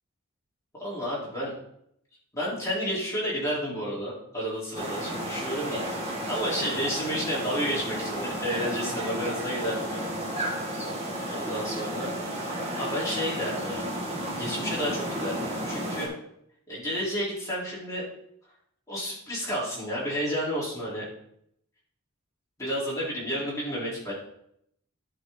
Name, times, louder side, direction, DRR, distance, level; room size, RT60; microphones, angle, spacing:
voice 1, 0.8-1.5 2.3-5.8 6.3-10.1 11.3-12.2 12.8-13.9 14.3-16.1 16.7-18.0 18.9-21.1 22.6-24.1, equal, 15° left, -7 dB, 3.7 m, -31 dB
sound 1, 4.7-16.1, right 1 dB, 30° right, 2.0 m, -32 dB
11.5 x 5.4 x 3.9 m, 0.72 s
head